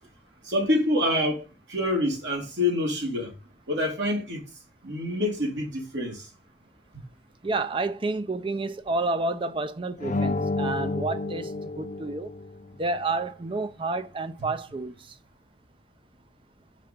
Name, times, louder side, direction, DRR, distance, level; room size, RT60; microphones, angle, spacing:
voice 1, 0.4-3.3 3.7-4.4 4.8-6.3, left 1 dB, 75° right, 2.7 m, -26 dB
voice 2, 7.4-12.3 12.8-15.2, right 3 dB, 30° right, 0.5 m, -30 dB
sound 1, 10.0-12.7, left 2 dB, 40° left, 0.5 m, -30 dB
5.8 x 4.7 x 5.1 m
head